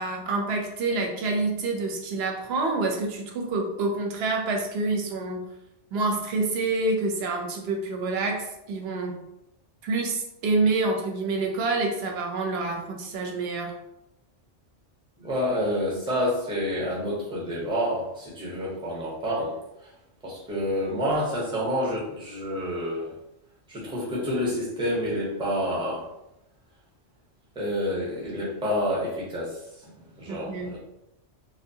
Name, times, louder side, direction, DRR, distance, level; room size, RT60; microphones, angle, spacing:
voice 1, 0.0-5.4 5.9-9.2 9.8-13.7 30.3-30.7, right 3 dB, 70° right, 2 dB, 0.8 m, -27 dB
voice 2, 15.2-19.5 19.8-19.9 20.2-23.1 23.7-26.0 27.6-30.8, equal, 5° right, -5 dB, 0.5 m, -28 dB
2.6 x 2.1 x 2.6 m, 0.87 s
omnidirectional pair, 1.2 m